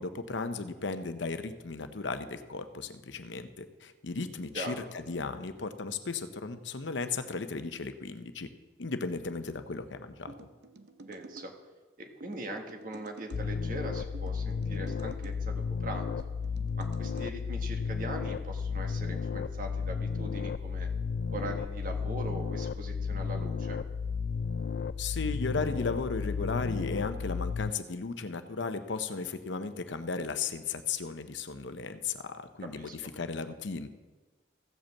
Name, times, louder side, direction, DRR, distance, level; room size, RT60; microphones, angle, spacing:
voice 1, 0.0-8.5 8.8-10.3 25.0-33.9, left 4 dB, 80° left, 10 dB, 0.8 m, -35 dB
sound 1, 10.3-11.5 12.2-13.4 14.1-15.4 16.1-17.3, right 2 dB, 65° right, 0.7 m, -50 dB
voice 2, 11.1-11.5 12.0-16.1 16.8-20.9 21.3-23.8 32.6-33.0, right 1 dB, 45° right, 3 dB, 1.5 m, -41 dB
sound 2, 13.3-27.7, left 5 dB, 55° left, 0.3 m, -33 dB
15.5 x 5.2 x 7.3 m, 1.3 s
head